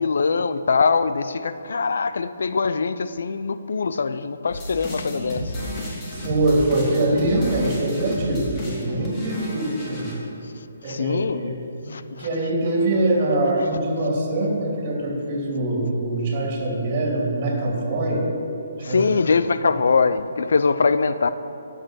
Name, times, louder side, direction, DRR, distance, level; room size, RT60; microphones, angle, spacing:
voice 1, 0.0-5.5 10.8-12.3 18.8-21.3, left 4 dB, 70° left, 12 dB, 0.5 m, -22 dB
sound 1, 4.5-10.1, equal, 25° left, 2.6 m, -32 dB
voice 2, 6.1-10.2 10.8-18.2 18.9-19.1, right 2 dB, 35° right, -1 dB, 2.7 m, -24 dB
10.5 x 7.4 x 6.3 m, 2.9 s
hypercardioid pair, 155°, 0 cm